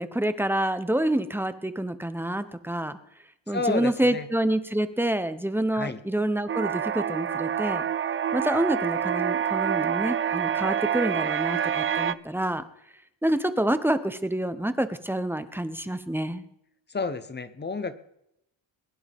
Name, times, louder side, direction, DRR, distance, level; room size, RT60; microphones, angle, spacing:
voice 1, 0.0-3.0 3.5-7.8 8.3-12.6 13.2-16.4, right 1 dB, 5° right, 11 dB, 0.8 m, -27 dB
voice 2, 3.5-4.3 5.7-6.0 16.9-17.9, left 3 dB, 25° left, 12 dB, 0.9 m, -30 dB
sound 1, 6.5-12.1, right 8 dB, 30° right, 0.4 m, -27 dB
21.5 x 11.0 x 3.6 m, 0.79 s
cardioid pair, 115°, 45 cm